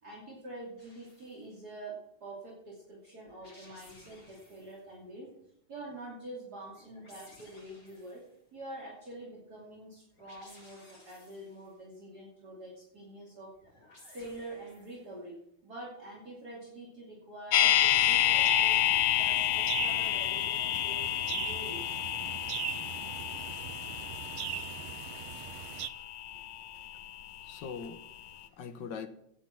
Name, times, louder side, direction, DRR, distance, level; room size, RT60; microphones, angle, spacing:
voice 1, 0.0-5.3 5.7-8.2 8.5-13.5 14.0-15.4 15.6-18.8 19.1-21.8, right 1 dB, 50° right, 3.3 m, -46 dB
sound 1, 0.8-1.5 3.3-4.8 6.7-8.4 10.1-11.7 13.5-15.2, left 1 dB, 50° left, 6.3 m, -58 dB
sound 2, 17.5-27.6 27.8-27.9, left 11 dB, 90° left, 1.6 m, -29 dB
sound 3, 17.8-25.9, right 12 dB, 85° right, 1.5 m, -41 dB
voice 2, 26.3-29.1, left 6 dB, 65° left, 1.7 m, -44 dB
16.5 x 8.1 x 5.9 m
omnidirectional pair, 2.2 m